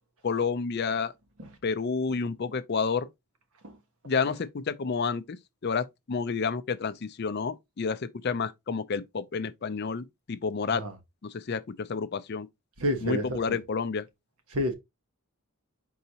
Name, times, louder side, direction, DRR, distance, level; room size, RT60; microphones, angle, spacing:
voice 1, 0.2-1.1 1.6-3.1 4.0-5.4 5.6-10.8 11.2-12.5 13.0-14.1, left 5 dB, 50° left, 0.4 m, -30 dB
voice 2, 12.8-13.6 14.5-14.7, equal, 80° right, 1.2 m, -29 dB
4.6 x 4.0 x 2.8 m
head